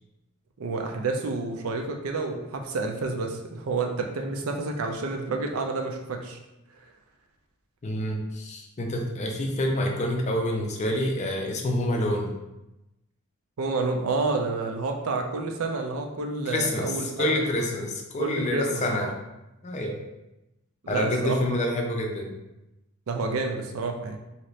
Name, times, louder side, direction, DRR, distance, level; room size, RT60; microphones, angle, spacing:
voice 1, 0.6-6.4 13.6-17.3 18.2-19.1 20.8-21.4 23.1-24.2, right 3 dB, 70° right, 3 dB, 0.5 m, -29 dB
voice 2, 7.8-12.3 16.5-19.1 19.6-20.0 20.9-22.3, left 1 dB, 30° left, 1 dB, 0.4 m, -27 dB
2.8 x 2.5 x 3.1 m, 0.94 s
head